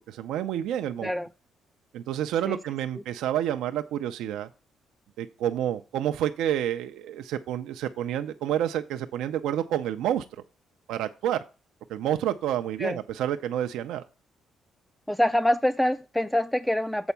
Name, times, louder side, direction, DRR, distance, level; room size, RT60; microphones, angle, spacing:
voice 1, 0.1-1.1 1.9-4.5 5.2-10.2 10.9-11.4 11.9-14.0, right 11 dB, 90° right, 0.5 m, -29 dB
voice 2, 15.1-17.1, left 1 dB, 5° left, 0.3 m, -25 dB
7.1 x 4.4 x 6.9 m
cardioid pair, 90°, 0 cm